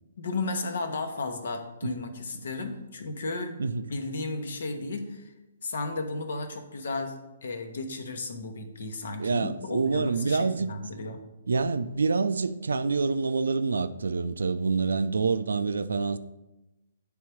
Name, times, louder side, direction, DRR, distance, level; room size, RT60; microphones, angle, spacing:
voice 1, 0.2-3.6 3.9-5.3 5.6-11.2, left 3 dB, 70° left, 1.0 m, -34 dB
voice 2, 9.2-10.7 11.5-16.2, right 4 dB, 80° right, 0.4 m, -27 dB
8.7 x 3.6 x 4.5 m
hypercardioid pair, 135°, 0 cm